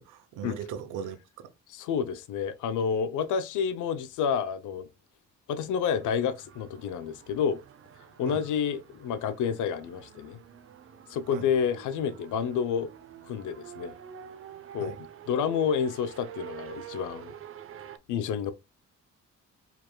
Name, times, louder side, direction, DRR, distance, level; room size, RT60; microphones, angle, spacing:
voice 1, 0.0-1.5 8.2-8.4 11.3-11.5 14.8-15.0, right 8 dB, 90° right, 0.8 m, -39 dB
voice 2, 1.7-4.9 5.5-7.6 8.2-10.4 11.1-12.9 13.3-13.9 14.7-14.9 15.3-17.3 18.1-18.5, left 7 dB, 80° left, 0.7 m, -29 dB
sound 1, 5.9-18.0, right 9 dB, 45° right, 0.6 m, -47 dB
4.6 x 3.4 x 2.2 m
cardioid pair, 90°, 30 cm